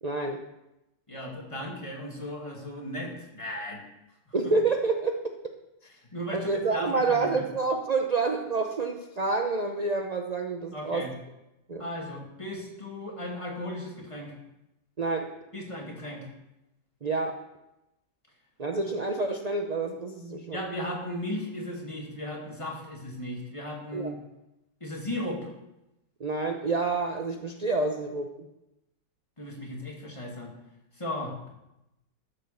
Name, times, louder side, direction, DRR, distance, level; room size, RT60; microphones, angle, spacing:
voice 1, 0.0-0.4 4.3-5.2 6.3-11.0 11.7-11.9 15.0-15.3 17.0-17.4 18.6-20.6 23.9-24.1 26.2-28.3, right 3 dB, 45° right, 3 dB, 0.5 m, -28 dB
voice 2, 1.1-3.8 4.3-4.5 6.1-7.4 10.7-11.1 11.8-14.3 15.5-16.3 20.5-24.1 24.8-25.5 29.4-30.5 30.9-31.3, left 1 dB, 15° left, -2 dB, 2.5 m, -36 dB
13.5 x 7.1 x 6.9 m, 0.92 s
omnidirectional pair, 1.9 m